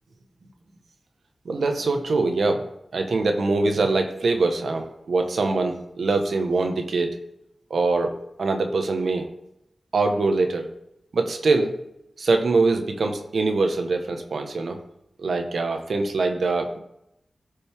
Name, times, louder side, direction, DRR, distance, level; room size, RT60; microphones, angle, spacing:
voice 1, 1.4-2.6 2.9-7.2 7.7-9.3 9.9-10.7 11.1-11.7 12.2-14.8 15.2-16.8, right 3 dB, 80° right, 5 dB, 1.3 m, -23 dB
14.0 x 5.3 x 3.6 m, 0.82 s
cardioid pair, 60°, 0 cm